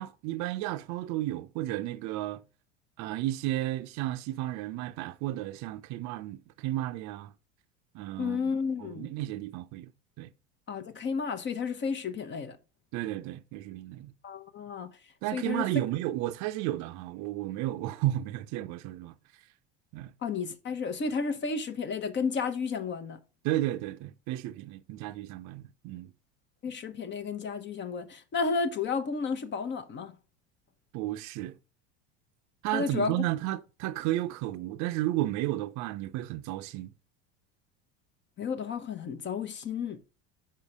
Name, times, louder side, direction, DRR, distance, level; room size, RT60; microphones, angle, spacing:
voice 1, 0.0-2.4 3.0-7.3 7.9-8.5 8.8-9.9 10.2-10.3 12.9-14.1 15.2-19.1 19.9-20.1 23.4-26.1 30.9-31.6 32.6-36.9, right 15 dB, 55° right, 0.6 m, -33 dB
voice 2, 8.2-9.1 10.7-12.6 14.2-14.9 15.3-15.6 20.2-23.2 26.6-30.1 32.7-33.2 38.4-40.0, left 5 dB, 35° left, 0.8 m, -32 dB
5.6 x 4.4 x 4.8 m
supercardioid pair, 95°, 34 cm